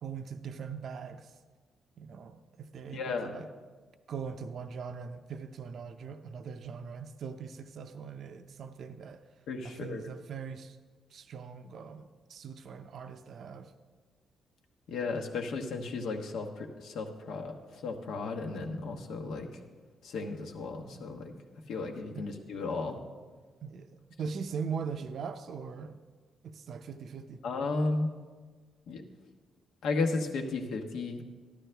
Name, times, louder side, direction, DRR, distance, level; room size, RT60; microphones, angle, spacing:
voice 1, 0.0-1.3 2.0-3.5 4.1-9.3 9.6-10.8 11.1-13.7 22.2-22.3 23.6-26.0 26.4-27.4, right 6 dB, 60° right, 8 dB, 0.5 m, -41 dB
voice 2, 2.9-3.4 9.5-10.1 14.9-19.5 20.0-21.3 21.7-23.0 27.4-28.1 28.9-29.0 29.8-31.2, left 3 dB, 85° left, 3 dB, 1.1 m, -34 dB
13.0 x 12.0 x 3.4 m, 1.4 s
cardioid pair, 130°, 0 cm